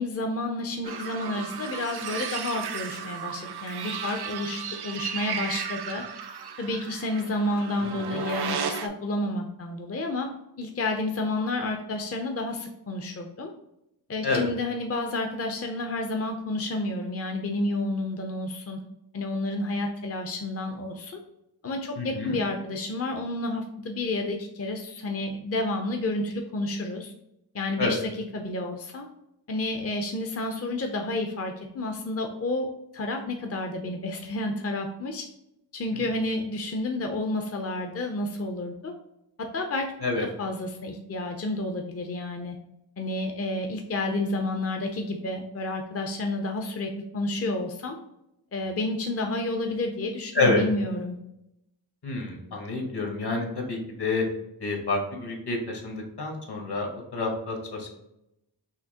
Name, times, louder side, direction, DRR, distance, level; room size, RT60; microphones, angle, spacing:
voice 1, 0.0-6.0 6.6-10.3 10.6-13.5 14.1-18.8 19.1-21.2 21.6-27.1 27.5-29.1 29.5-32.7 32.9-35.3 35.7-38.9 39.4-39.9 40.4-42.6 43.0-48.0 48.5-51.2, left 2 dB, 35° left, 3 dB, 0.5 m, -30 dB
sound 1, 0.8-8.9, right 7 dB, 70° right, 0.5 m, -34 dB
voice 2, 7.8-8.2 14.2-14.5 22.0-22.4 27.8-28.0 35.9-36.0 40.0-40.3 50.3-50.6 52.0-54.2 54.6-57.9, left 3 dB, 65° left, 1 dB, 1.2 m, -28 dB
5.7 x 2.8 x 2.7 m, 0.84 s
wide cardioid pair, 90°, 42 cm